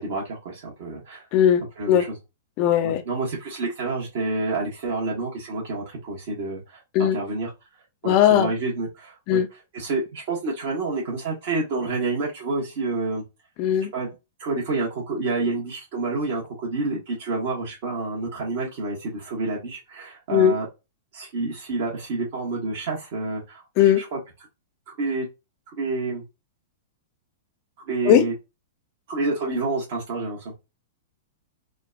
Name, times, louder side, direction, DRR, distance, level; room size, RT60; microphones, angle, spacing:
voice 1, 0.0-1.3 1.8-2.1 2.8-7.5 8.0-9.4 9.7-13.2 13.9-14.1 14.4-20.7 21.1-24.2 25.0-25.3 25.7-26.2 27.9-28.3 29.1-30.5, right 3 dB, 55° right, 1.2 m, -28 dB
voice 2, 1.3-2.1 2.6-3.0 6.9-7.2 8.0-8.5 9.3-9.5 13.6-13.9 20.3-20.6 23.8-24.0 28.1-28.3, left 10 dB, 45° left, 0.5 m, -18 dB
3.7 x 2.3 x 2.3 m
figure-of-eight pair, 105°, 0 cm